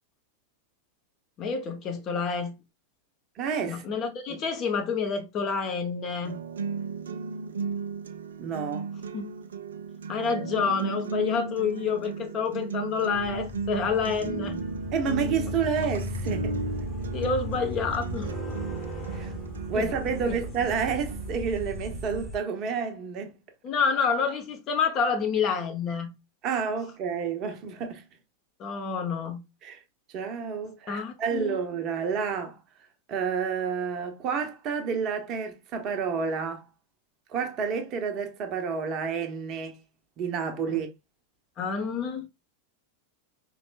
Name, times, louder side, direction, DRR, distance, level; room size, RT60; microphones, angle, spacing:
voice 1, 1.4-2.5 3.6-6.4 9.1-9.2 10.1-14.6 17.1-18.3 19.8-19.9 23.6-26.1 28.6-29.4 30.9-31.5 41.6-42.3, left 5 dB, 35° left, 1.1 m, -28 dB
voice 2, 3.4-3.8 4.3-4.4 8.4-8.9 14.9-16.6 19.1-19.3 19.7-23.4 26.4-28.0 29.6-29.8 30.1-32.6 33.1-36.7 37.3-39.8 40.2-40.9, right 6 dB, 35° right, 1.0 m, -30 dB
sound 1, 6.2-22.2, right 4 dB, 65° right, 0.5 m, -36 dB
sound 2, 13.1-22.4, equal, 10° left, 1.2 m, -36 dB
5.2 x 3.2 x 2.5 m
figure-of-eight pair, 90°, 0 cm